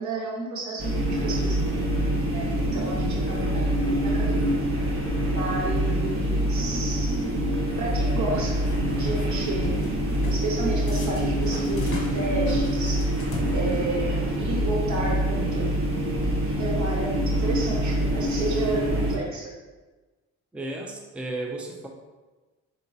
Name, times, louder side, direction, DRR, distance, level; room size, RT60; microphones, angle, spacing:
voice 1, 0.0-1.6 2.3-3.7 4.0-4.5 4.8-4.9 5.2-7.2 7.8-8.7 8.9-9.7 10.3-13.1 13.5-15.7 16.6-19.5, right 2 dB, 70° right, -2 dB, 1.4 m, -31 dB
sound 1, 0.8-19.2, equal, 45° right, 1.4 m, -25 dB
sound 2, 8.7-9.3 9.6-10.5 10.9-14.1, left 2 dB, 45° left, 1.3 m, -38 dB
voice 2, 20.5-21.9, right 2 dB, 5° right, 0 dB, 0.6 m, -33 dB
4.9 x 3.8 x 2.8 m, 1.2 s
cardioid pair, 90°, 30 cm